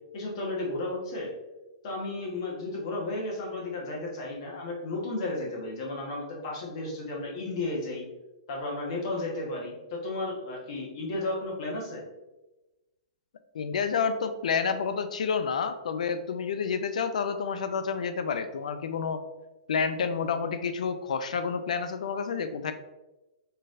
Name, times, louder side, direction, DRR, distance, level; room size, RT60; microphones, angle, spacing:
voice 1, 0.1-1.3 1.8-8.1 8.5-12.0, left 2 dB, 45° left, -2 dB, 1.2 m, -33 dB
voice 2, 13.5-19.2 19.7-22.7, left 6 dB, 90° left, 9 dB, 0.4 m, -29 dB
4.4 x 3.2 x 2.5 m, 1.0 s
hypercardioid pair, 170°, 4 cm